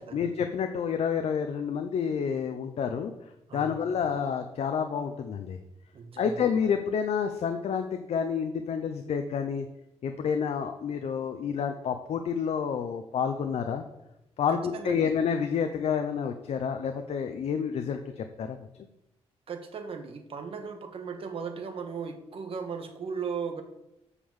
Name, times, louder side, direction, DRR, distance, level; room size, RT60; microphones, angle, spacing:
voice 1, 0.1-3.1 3.5-5.6 6.2-9.7 10.0-13.8 14.4-18.6, left 7 dB, 70° left, 7 dB, 0.7 m, -29 dB
voice 2, 3.5-3.8 5.9-6.5 14.5-15.1 19.5-23.6, right 6 dB, 55° right, 6 dB, 1.4 m, -37 dB
8.2 x 5.6 x 7.2 m, 0.87 s
wide cardioid pair, 150°, 11 cm